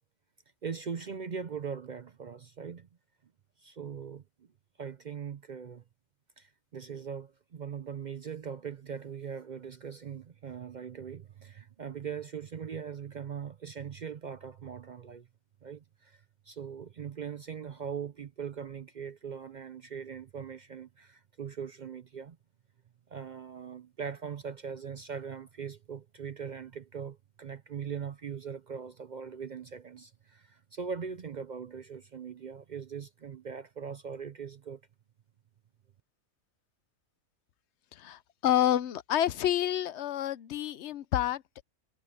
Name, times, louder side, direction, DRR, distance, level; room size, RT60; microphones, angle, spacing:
voice 1, 0.6-2.9 3.6-4.2 4.8-5.8 6.4-15.3 15.6-22.4 23.1-34.8, right 7 dB, 55° right, 0.5 m, -40 dB
voice 2, 38.0-41.6, left 11 dB, 60° left, 0.9 m, -29 dB
omnidirectional pair, 1.4 m